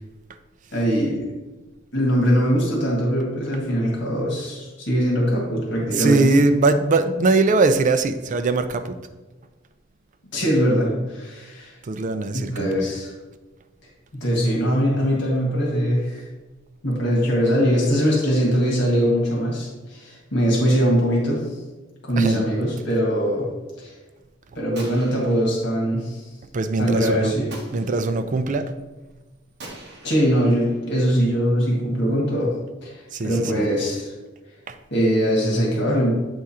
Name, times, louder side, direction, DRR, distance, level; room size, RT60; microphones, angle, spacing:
voice 1, 0.7-1.3 1.9-6.3 10.3-11.8 12.3-13.1 14.1-16.3 16.8-21.4 22.0-23.5 23.8-23.9 24.6-26.3 26.8-27.5 30.0-32.5 32.8-34.1 34.9-36.1, equal, 65° left, -3 dB, 1.8 m, -21 dB
voice 2, 5.9-9.0 11.9-12.9 22.2-22.4 26.5-27.3 27.7-28.7 33.1-33.6 34.7-34.8, right 3 dB, 40° right, 10 dB, 0.4 m, -21 dB
Gunshot gunfire, 24.7-25.9 27.5-28.3 29.6-31.3, right 2 dB, 60° right, 1.3 m, -43 dB
7.9 x 3.6 x 4.3 m, 1.2 s
head